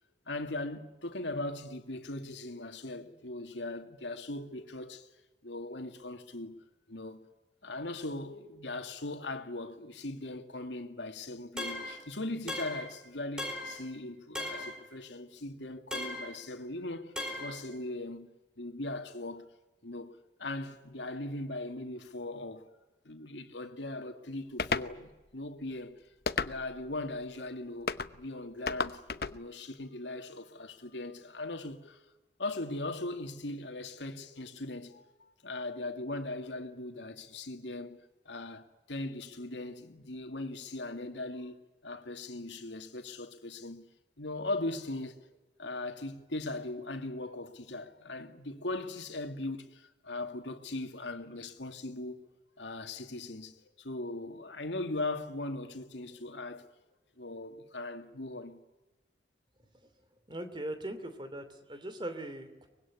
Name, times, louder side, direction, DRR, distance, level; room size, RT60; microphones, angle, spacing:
voice 1, 0.3-5.1 5.4-7.3 7.6-19.4 19.8-22.7 23.0-26.1 26.4-29.0 29.3-32.0 32.4-38.0 38.3-43.9 44.2-45.2 45.6-52.2 52.6-56.7 57.2-58.6, left 2 dB, 85° left, 2.4 m, -39 dB
sound 1, 11.6-12.0 12.5-12.9 13.4-13.8 14.3-14.8 15.9-16.4 17.2-17.6, left 1 dB, 5° right, 4.7 m, -37 dB
sound 2, 24.6-24.9 26.3-26.8 27.9-28.1 28.7-29.4, left 4 dB, 55° left, 0.9 m, -32 dB
voice 2, 60.3-62.7, right 1 dB, 25° right, 2.9 m, -40 dB
24.0 x 21.0 x 9.7 m
head